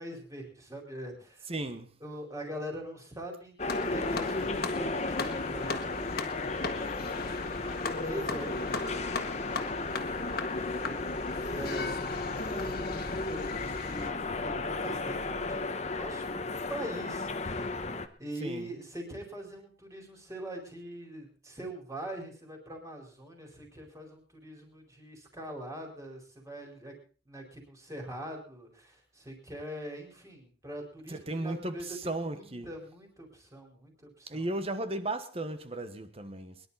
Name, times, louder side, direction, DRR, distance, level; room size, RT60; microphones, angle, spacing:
voice 1, 0.0-1.5 2.0-17.9 18.2-26.9 27.3-34.5, right 1 dB, 20° right, 4.5 m, -43 dB
voice 2, 1.5-1.9 18.4-18.7 31.1-32.7 34.3-36.6, right 2 dB, 35° right, 1.3 m, -35 dB
sound 1, 3.6-18.1, left 3 dB, 40° left, 1.0 m, -34 dB
sound 2, 3.7-14.1, left 3 dB, 55° left, 1.7 m, -39 dB
23.0 x 11.0 x 4.2 m
head